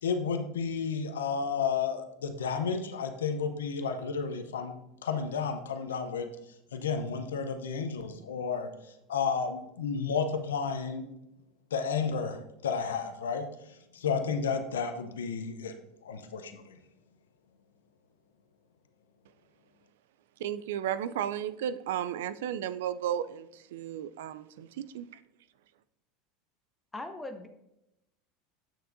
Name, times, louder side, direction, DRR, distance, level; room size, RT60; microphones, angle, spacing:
voice 1, 0.0-4.7 5.0-6.3 6.7-11.0 11.7-15.7 16.0-16.8, left 6 dB, 85° left, 7 dB, 0.6 m, -32 dB
voice 2, 20.4-25.1, right 10 dB, 75° right, 14 dB, 0.3 m, -34 dB
voice 3, 26.9-27.5, left 2 dB, 10° left, 5 dB, 0.7 m, -39 dB
7.7 x 6.7 x 2.6 m, 0.87 s
hypercardioid pair, 85°, 0 cm